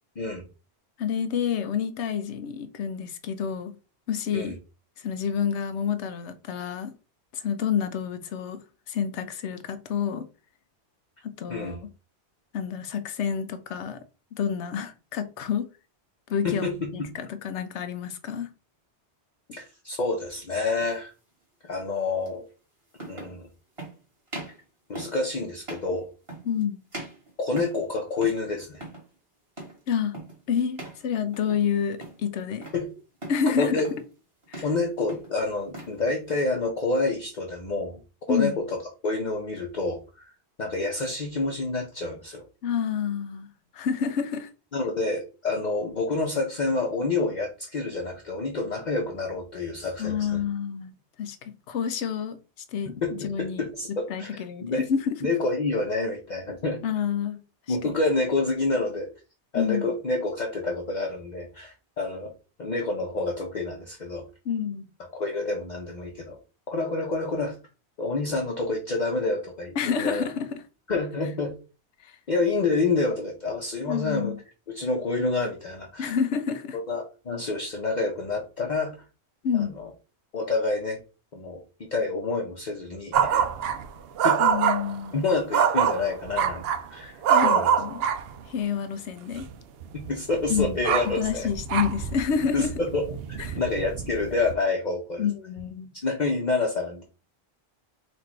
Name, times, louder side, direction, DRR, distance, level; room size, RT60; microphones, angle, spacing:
voice 1, 1.0-3.7 4.1-4.5 5.0-6.9 7.3-8.6 8.9-10.2 11.2-11.9 12.5-14.0 14.4-15.7 16.3-18.5 26.4-26.8 29.9-30.2 30.5-32.7 33.3-33.8 34.5-34.6 38.3-38.6 42.6-43.5 43.7-44.5 50.0-52.4 52.7-53.7 54.1-55.2 56.8-57.4 57.7-57.9 59.5-59.9 64.5-64.9 69.8-70.6 72.0-72.1 73.9-74.4 76.0-76.8 79.4-79.8 84.4-85.2 87.3-88.0 88.5-89.5 90.5-90.8 91.0-92.7 93.5-93.6 95.2-95.9, left 7 dB, 85° left, 1.0 m, -28 dB
voice 2, 16.4-17.1 19.5-21.1 21.6-22.4 23.0-23.5 24.9-26.1 27.4-28.8 32.7-32.9 33.6-33.9 34.6-38.0 38.3-38.8 39.0-40.3 40.6-42.4 44.7-50.4 53.0-54.3 54.6-54.8 55.2-56.8 57.7-59.1 59.5-62.3 62.6-64.2 65.1-66.4 66.7-67.6 68.0-70.2 70.9-71.5 72.3-74.3 74.7-76.2 76.9-79.0 79.5-79.9 80.3-81.0 81.3-81.6 81.9-83.5 84.2-84.4 85.1-86.6 86.9-87.1 87.4-87.8 89.9-91.5 92.5-95.3 95.9-97.0, left 3 dB, 45° left, 0.8 m, -28 dB
sound 1, 20.7-20.9 22.3-22.4 22.9-23.4 23.8-24.0 24.3-24.6 25.0-25.2 25.6-25.9 26.3-26.6 26.9-27.9 28.2-28.5 28.7-29.1 29.6-29.8 30.1-30.4 30.8-31.0 31.3-31.7 32.0-32.8 33.2-33.5 33.8-34.1 34.4-34.8 35.1-36.0, right 2 dB, 25° right, 1.8 m, -40 dB
sound 2, 83.1-83.9 84.2-84.9 85.5-86.9 87.2-88.4 89.3-89.5 89.8-94.5, right 7 dB, 65° right, 0.7 m, -25 dB
4.2 x 2.5 x 4.4 m
omnidirectional pair, 1.1 m